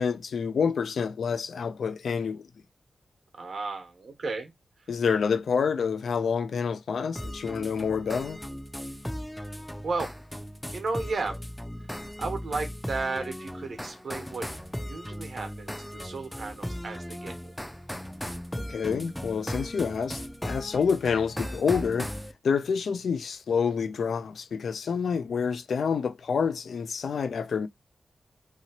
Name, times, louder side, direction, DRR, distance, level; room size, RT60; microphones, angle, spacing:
voice 1, 0.0-2.5 4.9-8.4 18.7-22.1 22.4-27.7, left 6 dB, 85° left, 0.3 m, -28 dB
voice 2, 3.3-4.5 4.8-4.9 9.8-10.1 10.7-11.4 12.2-17.5, right 3 dB, 70° right, 1.0 m, -34 dB
sound 1, 7.2-22.3, equal, 5° left, 0.4 m, -37 dB
2.8 x 2.8 x 2.8 m
wide cardioid pair, 85°, 0 cm